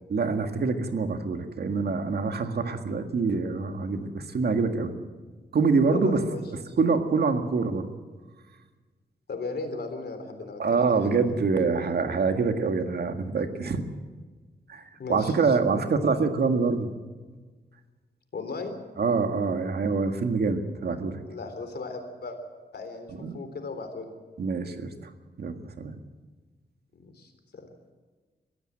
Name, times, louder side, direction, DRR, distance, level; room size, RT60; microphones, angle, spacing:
voice 1, 0.1-4.9 5.5-6.2 6.5-7.9 10.6-13.8 14.7-14.8 15.1-16.9 19.0-21.2 23.2-23.4 24.4-25.1 25.4-26.0, right 4 dB, 70° right, 6 dB, 1.9 m, -25 dB
voice 2, 5.9-6.4 9.3-11.1 15.0-15.3 18.3-18.7 21.3-22.4 22.7-24.1 27.0-27.7, left 3 dB, 70° left, 7 dB, 3.6 m, -36 dB
23.0 x 15.5 x 7.7 m, 1.4 s
wide cardioid pair, 165°, 17 cm